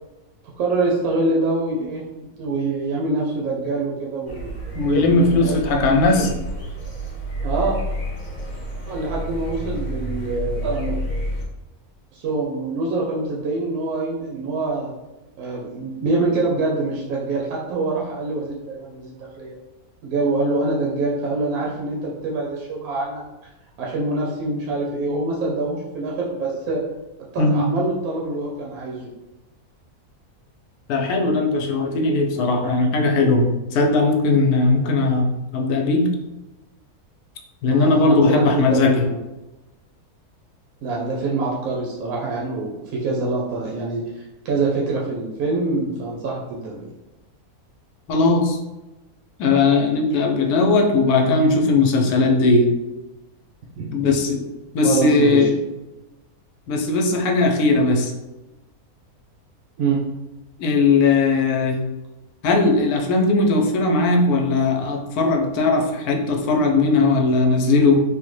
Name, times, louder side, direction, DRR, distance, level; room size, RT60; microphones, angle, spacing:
voice 1, 0.6-2.0 2.4-4.5 4.8-6.3 7.4-7.7 8.9-11.0 12.1-14.9 15.4-19.6 20.0-23.2 23.8-26.8 27.3-29.1 37.7-39.2 40.8-46.9 53.8-53.9 54.8-55.5 59.8-60.0, right 3 dB, 75° right, -4 dB, 1.0 m, -25 dB
sound 1, 4.3-11.4, equal, 45° left, 0.6 m, -30 dB
voice 2, 4.7-6.3 27.4-27.7 30.9-35.3 35.5-36.1 37.6-38.9 48.1-48.6 49.4-52.7 53.9-54.4 54.7-55.5 56.7-58.1 60.6-61.8 62.4-68.0, left 3 dB, 85° left, 2 dB, 1.1 m, -18 dB
3.4 x 2.1 x 3.1 m, 1.0 s
omnidirectional pair, 1.6 m